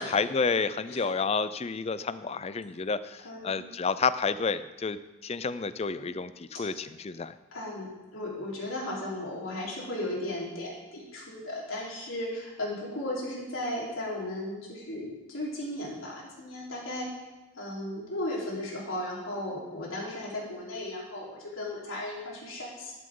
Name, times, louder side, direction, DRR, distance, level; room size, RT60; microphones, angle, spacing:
voice 1, 0.0-7.4, left 4 dB, 30° left, 14 dB, 0.4 m, -30 dB
voice 2, 3.2-3.7 5.9-6.1 7.5-7.9 8.1-17.1 17.6-23.0, left 1 dB, 90° left, -5 dB, 3.9 m, -36 dB
13.0 x 11.5 x 3.8 m, 1.1 s
head